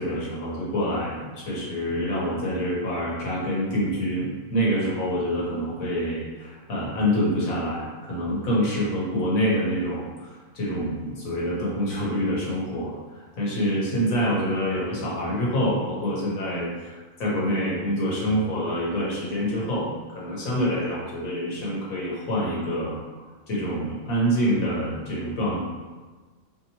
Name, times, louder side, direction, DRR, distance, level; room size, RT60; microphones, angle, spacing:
voice 1, 0.0-10.3 10.5-12.9 13.4-23.0 23.5-25.6, equal, 75° left, -6 dB, 1.5 m, -26 dB
4.3 x 2.9 x 2.9 m, 1.3 s
omnidirectional pair, 1.5 m